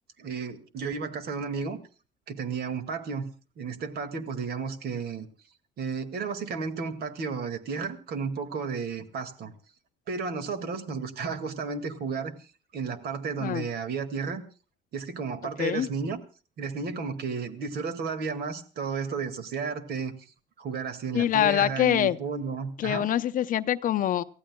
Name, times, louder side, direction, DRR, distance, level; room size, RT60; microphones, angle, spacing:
voice 1, 0.2-1.8 2.3-3.3 3.6-5.3 5.8-9.5 10.1-12.4 12.7-14.4 14.9-16.2 16.6-20.2 20.6-23.1, right 5 dB, 60° right, 8 dB, 2.1 m, -33 dB
voice 2, 21.1-22.2 22.8-24.2, left 11 dB, 50° left, 10 dB, 0.7 m, -24 dB
29.0 x 15.5 x 2.3 m, 0.37 s
cardioid pair, 150°, 18 cm